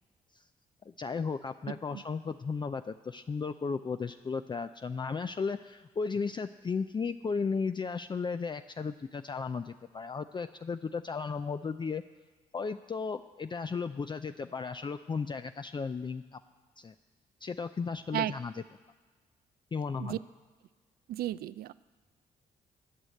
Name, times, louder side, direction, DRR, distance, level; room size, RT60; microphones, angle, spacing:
voice 1, 0.9-12.0 12.5-16.4 16.8-16.9 17.4-18.6 19.7-20.2, left 5 dB, 30° left, 9 dB, 0.4 m, -35 dB
voice 2, 21.1-21.7, right 13 dB, 65° right, 17 dB, 0.4 m, -33 dB
11.0 x 6.4 x 8.8 m, 1.4 s
supercardioid pair, 55°, 17 cm